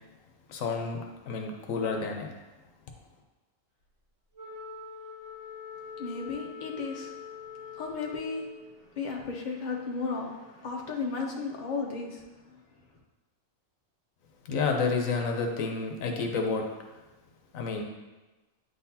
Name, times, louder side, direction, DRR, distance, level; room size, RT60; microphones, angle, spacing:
voice 1, 0.5-2.3 14.5-16.6 17.5-17.8, left 4 dB, 80° left, 3 dB, 1.1 m, -30 dB
Wind instrument woodwind instrument, 4.3-8.7, left 5 dB, 90° right, 2.0 m, -43 dB
voice 2, 6.0-7.1 7.7-8.5 8.8-12.6, left 4 dB, 40° left, 0 dB, 0.9 m, -34 dB
9.5 x 4.0 x 2.8 m, 1.1 s
omnidirectional pair, 1.4 m